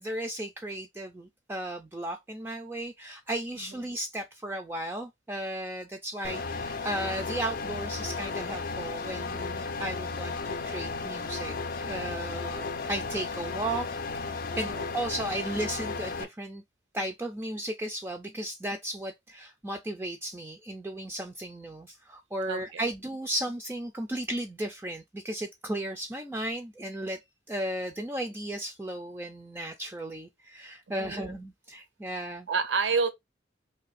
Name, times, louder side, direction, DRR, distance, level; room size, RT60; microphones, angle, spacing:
voice 1, 0.0-11.5 11.8-13.9 14.6-16.6 16.9-27.2 27.5-32.5, right 1 dB, 10° right, 0.3 m, -35 dB
sound 1, 6.2-16.2, left 4 dB, 50° left, 0.5 m, -34 dB
voice 2, 22.5-22.8 31.0-31.3 32.5-33.1, right 5 dB, 75° right, 0.6 m, -29 dB
2.7 x 2.5 x 4.0 m
head